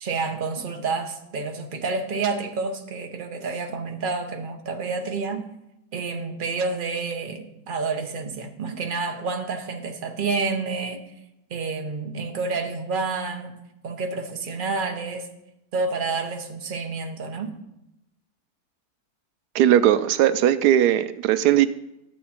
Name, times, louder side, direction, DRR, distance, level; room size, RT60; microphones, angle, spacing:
voice 1, 0.0-5.5 5.9-11.0 11.5-13.6 13.8-15.3 15.7-17.5, right 4 dB, 35° right, 1.0 m, -29 dB
voice 2, 19.5-21.7, right 11 dB, 85° right, 1.1 m, -18 dB
12.0 x 8.3 x 4.3 m
omnidirectional pair, 1.7 m